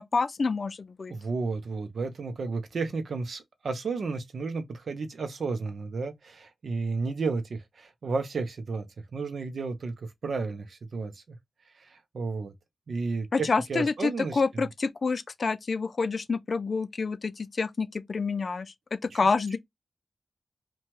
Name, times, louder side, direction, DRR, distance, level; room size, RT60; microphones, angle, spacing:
voice 1, 0.0-1.1 13.3-19.6, left 4 dB, 55° left, 0.3 m, -28 dB
voice 2, 1.1-8.9 9.1-11.2 11.9-12.5 12.9-14.4, right 4 dB, 70° right, 0.6 m, -32 dB
2.7 x 2.2 x 2.9 m
cardioid pair, 50°, 0 cm